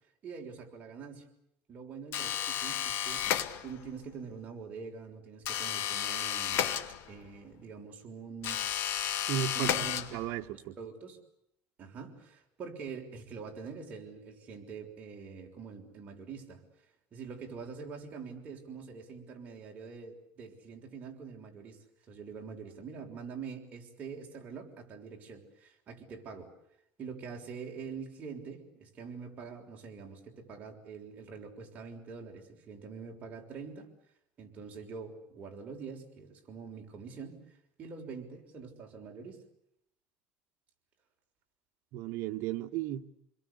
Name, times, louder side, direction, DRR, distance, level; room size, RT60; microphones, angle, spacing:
voice 1, 0.2-1.2 1.7-6.7 7.1-8.6 9.5-10.0 10.8-11.2 11.8-16.6 17.1-21.8 22.1-26.5 27.0-33.9 34.4-37.4 37.8-39.4, right 5 dB, 30° right, 6.1 m, -45 dB
sound 1, 2.1-3.9 5.4-7.4 8.4-10.5, left 10 dB, 55° left, 1.9 m, -33 dB
voice 2, 9.3-10.8 41.9-43.0, right 10 dB, 60° right, 1.7 m, -35 dB
29.0 x 22.0 x 8.3 m
cardioid pair, 145°, 5 cm